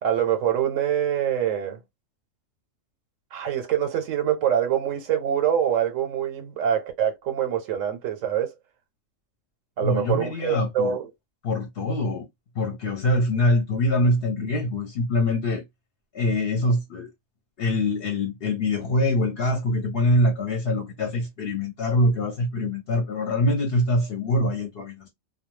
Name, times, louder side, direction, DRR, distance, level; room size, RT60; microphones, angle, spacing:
voice 1, 0.0-1.8 3.3-8.5 9.8-11.1, right 9 dB, 80° right, 1.0 m, -25 dB
voice 2, 9.8-11.0 11.4-12.3 12.6-15.6 16.1-17.1 17.6-25.1, left 1 dB, 55° left, 0.8 m, -24 dB
2.3 x 2.2 x 3.0 m
omnidirectional pair, 1.3 m